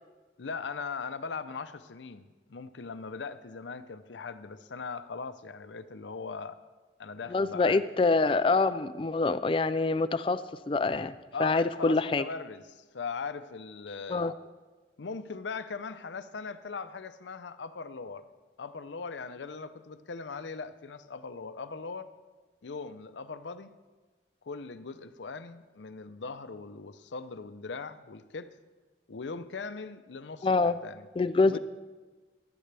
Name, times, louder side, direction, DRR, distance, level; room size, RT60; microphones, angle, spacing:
voice 1, 0.4-6.6 7.0-7.8 11.3-14.3 15.0-18.3 18.6-22.1 22.6-23.7 24.4-28.6 29.1-31.0 31.4-31.6, left 4 dB, 90° left, 12 dB, 0.6 m, -40 dB
voice 2, 7.3-10.4 10.7-11.1 11.4-12.2 14.1-14.3 30.4-30.8 31.2-31.6, left 3 dB, 30° left, 14 dB, 0.4 m, -25 dB
15.5 x 12.0 x 3.4 m, 1.3 s
head